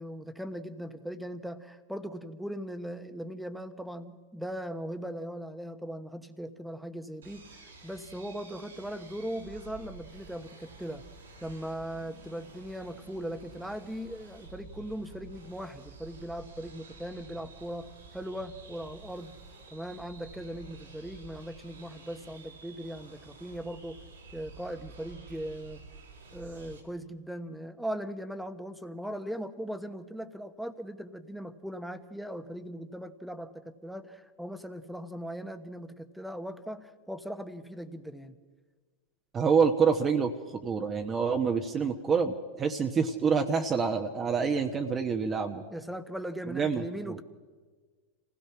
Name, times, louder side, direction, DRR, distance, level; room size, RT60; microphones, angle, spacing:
voice 1, 0.0-11.0 11.4-19.4 19.7-24.0 24.3-25.8 26.3-38.4 45.7-47.2, equal, ahead, 10 dB, 1.2 m, -39 dB
sound 1, 7.2-26.8, right 4 dB, 90° right, 3.8 m, -50 dB
voice 2, 39.3-40.3 40.6-45.6 46.5-47.2, right 5 dB, 25° right, 4 dB, 1.1 m, -27 dB
26.5 x 16.5 x 5.9 m, 1.4 s
hypercardioid pair, 100°, 0 cm